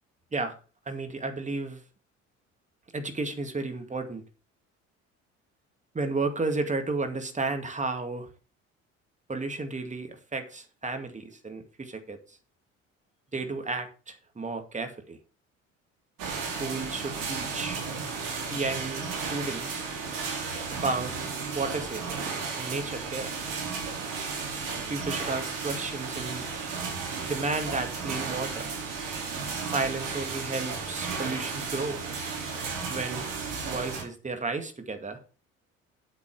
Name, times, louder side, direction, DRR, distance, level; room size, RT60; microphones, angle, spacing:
voice 1, 0.9-1.8 2.9-4.2 5.9-8.3 9.3-12.4 13.3-15.2 16.6-17.8 18.5-19.8 20.7-21.1 21.5-22.0 22.6-23.3 24.9-26.5 27.3-28.7 29.6-32.0 32.9-33.3 33.6-35.2, right 3 dB, 20° right, 7 dB, 2.2 m, -33 dB
sound 1, 16.2-34.0, right 5 dB, 55° right, 3.5 m, -34 dB
8.5 x 8.3 x 4.8 m, 0.35 s
figure-of-eight pair, 55°, 38 cm